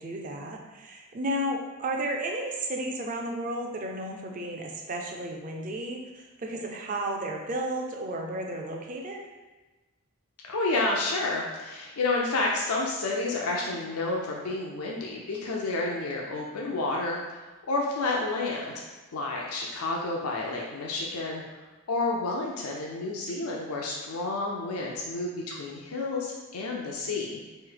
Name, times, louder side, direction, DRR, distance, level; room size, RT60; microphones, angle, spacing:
voice 1, 0.0-9.3, right 1 dB, 35° right, 1 dB, 0.4 m, -33 dB
voice 2, 10.5-17.4 17.7-21.4 21.9-27.4, left 2 dB, 90° left, -2 dB, 0.5 m, -30 dB
3.1 x 2.6 x 3.9 m, 1.2 s
head